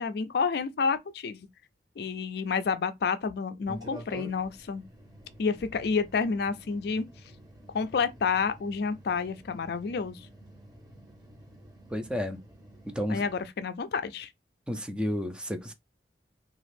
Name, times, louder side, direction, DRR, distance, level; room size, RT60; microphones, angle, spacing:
voice 1, 0.0-1.5 2.0-4.8 5.4-7.0 7.7-10.3 13.1-14.3, left 5 dB, 60° left, 0.4 m, -29 dB
sound 1, 3.7-13.5, right 1 dB, 20° right, 0.9 m, -49 dB
voice 2, 11.9-12.4 12.9-13.2 14.7-15.7, equal, 5° right, 0.4 m, -31 dB
2.9 x 2.4 x 3.3 m
head